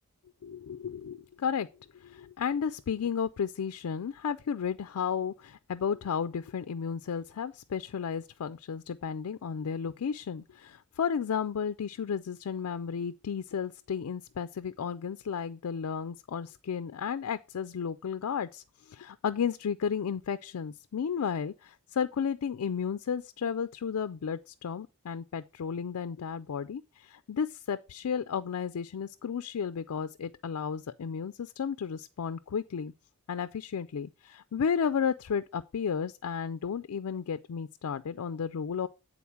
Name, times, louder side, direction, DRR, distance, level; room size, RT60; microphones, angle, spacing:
voice 1, 0.4-1.7 1.9-32.9 33.3-38.9, left 7 dB, 85° left, 0.4 m, -33 dB
8.6 x 4.0 x 5.7 m
head